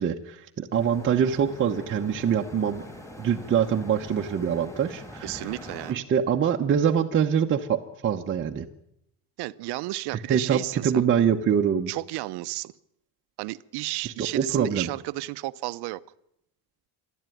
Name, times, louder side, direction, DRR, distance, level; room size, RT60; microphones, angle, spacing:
voice 1, 0.0-2.8 3.2-5.3 5.9-8.7 10.3-11.9 14.0-14.9, right 8 dB, 30° right, 1 dB, 0.9 m, -24 dB
sound 1, 0.7-5.9, left 1 dB, 5° left, 2.7 m, -43 dB
voice 2, 5.2-6.0 9.4-11.1 11.9-12.7 13.4-16.0, right 19 dB, 70° right, 15 dB, 0.8 m, -32 dB
27.0 x 11.0 x 9.2 m, 0.80 s
cardioid pair, 160°, 41 cm